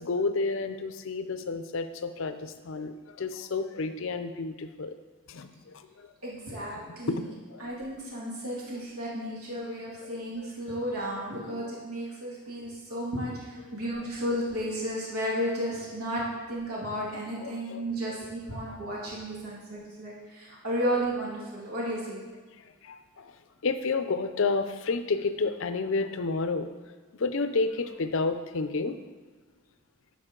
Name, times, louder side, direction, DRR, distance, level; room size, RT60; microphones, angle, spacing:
voice 1, 0.0-4.9 5.3-6.1 6.8-7.6 10.4-10.5 17.4-18.2 18.6-18.8 22.6-23.3 23.6-26.7 27.1-29.0, left 3 dB, 60° left, 10 dB, 0.5 m, -31 dB
voice 2, 6.2-7.2 7.6-22.2, equal, 85° right, -5 dB, 2.2 m, -33 dB
11.0 x 5.4 x 3.8 m, 1.4 s
head